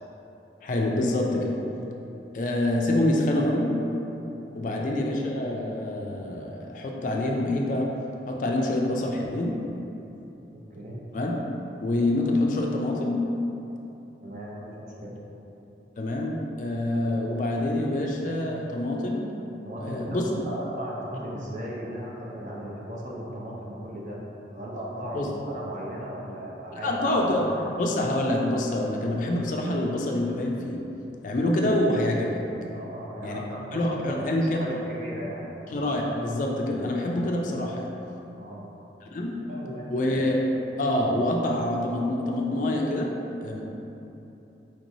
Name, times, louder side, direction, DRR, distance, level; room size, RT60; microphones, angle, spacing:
voice 1, 0.6-1.5 2.3-3.7 4.5-7.9 8.3-9.6 11.1-11.3 11.8-13.2 16.0-19.2 19.8-20.2 25.1-25.3 26.8-30.8 31.2-32.4 33.2-33.4 33.7-34.7 35.7-37.9 39.1-39.3 39.9-40.4 40.8-43.1 43.4-43.6, left 1 dB, 45° left, -1 dB, 0.3 m, -26 dB
voice 2, 4.5-4.8 10.7-11.0 14.2-15.2 19.6-24.2 24.5-27.7 32.7-35.5 38.4-38.7 39.5-40.2, equal, 45° right, -5 dB, 0.6 m, -37 dB
4.4 x 3.0 x 2.6 m, 3.0 s
head